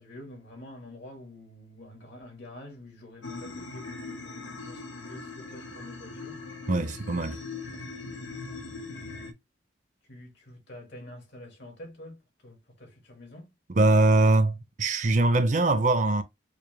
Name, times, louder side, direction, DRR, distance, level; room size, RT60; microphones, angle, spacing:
voice 1, 0.0-6.4 8.1-8.6 10.1-13.5, left 1 dB, 70° left, 2.0 m, -47 dB
sound 1, 3.2-9.3, left 3 dB, 90° left, 0.9 m, -40 dB
voice 2, 6.7-7.4 13.7-16.2, right 2 dB, 40° right, 0.5 m, -22 dB
4.9 x 2.2 x 3.2 m
head